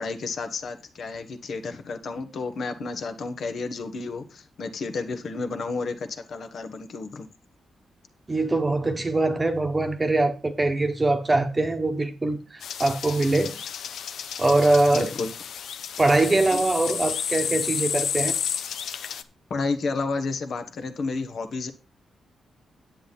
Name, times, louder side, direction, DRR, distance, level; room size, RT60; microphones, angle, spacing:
voice 1, 0.0-7.3 14.9-15.3 16.5-16.7 19.5-21.7, left 4 dB, 55° left, 1.4 m, -31 dB
voice 2, 8.3-13.5 14.4-15.1 16.0-18.4, right 2 dB, 15° right, 1.3 m, -23 dB
sound 1, 12.6-19.2, left 8 dB, 75° left, 0.9 m, -31 dB
9.9 x 8.5 x 4.2 m
wide cardioid pair, 155°, 0 cm